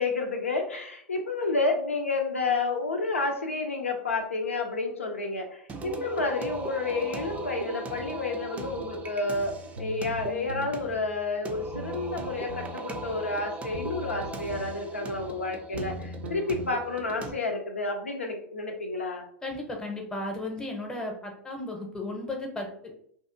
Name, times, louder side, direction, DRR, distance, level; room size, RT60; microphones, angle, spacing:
voice 1, 0.0-19.3, left 3 dB, 85° left, 2 dB, 0.5 m, -30 dB
Singing, 5.7-17.3, right 3 dB, 20° right, 0.4 m, -39 dB
sound 1, 9.8-10.7 11.7-12.7 13.7-14.7 15.7-16.7, equal, 70° right, 0.5 m, -39 dB
voice 2, 19.4-22.9, left 2 dB, 10° left, 2 dB, 0.7 m, -35 dB
2.6 x 2.5 x 2.5 m, 0.63 s
figure-of-eight pair, 95°, 7 cm